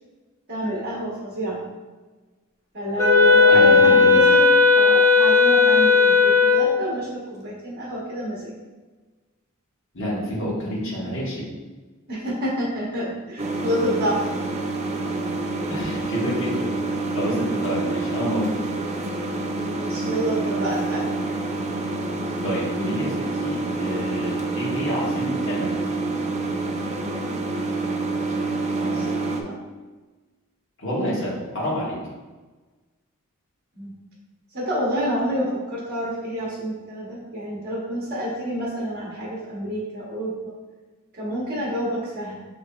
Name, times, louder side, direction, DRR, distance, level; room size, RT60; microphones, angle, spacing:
voice 1, 0.5-1.6 2.7-4.4 4.7-8.5 12.1-14.5 19.6-21.1 27.6-27.9 28.8-29.6 33.8-33.9 34.5-40.3 41.2-42.5, equal, 50° right, -5 dB, 1.1 m, -28 dB
Wind instrument woodwind instrument, 3.0-6.8, left 4 dB, 15° left, 0.7 m, -15 dB
voice 2, 3.5-4.2 9.9-11.5 15.4-16.7 17.1-18.5 22.4-25.8 30.8-32.0, equal, 65° left, -7 dB, 1.4 m, -28 dB
sound 1, 13.4-29.4, right 3 dB, 30° right, 0.4 m, -27 dB
6.7 x 3.2 x 2.3 m, 1.3 s
head